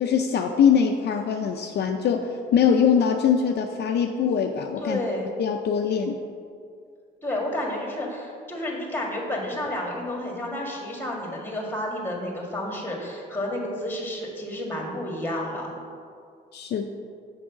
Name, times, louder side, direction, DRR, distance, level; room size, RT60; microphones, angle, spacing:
voice 1, 0.0-5.0 5.4-6.2 16.5-16.9, left 7 dB, 55° left, 4 dB, 0.5 m, -22 dB
voice 2, 4.8-5.3 7.2-15.8, left 1 dB, 10° left, 0 dB, 1.7 m, -31 dB
6.2 x 4.7 x 5.8 m, 2.3 s
cardioid pair, 90°, 20 cm